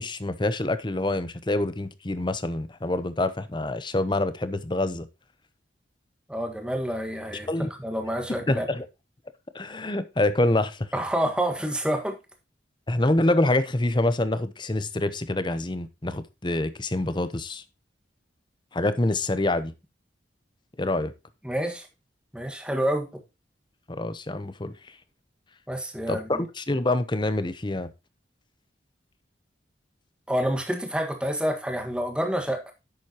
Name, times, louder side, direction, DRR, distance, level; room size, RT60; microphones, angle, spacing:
voice 1, 0.0-5.1 7.5-7.7 8.4-8.8 9.5-10.9 12.9-17.6 18.7-19.7 20.8-21.1 23.9-24.7 26.1-27.9, left 2 dB, 25° left, 0.8 m, -26 dB
voice 2, 6.3-8.6 10.9-12.1 21.4-21.9 22.3-23.1 25.7-26.4 30.3-32.7, equal, 5° right, 1.6 m, -28 dB
10.5 x 7.8 x 2.9 m
head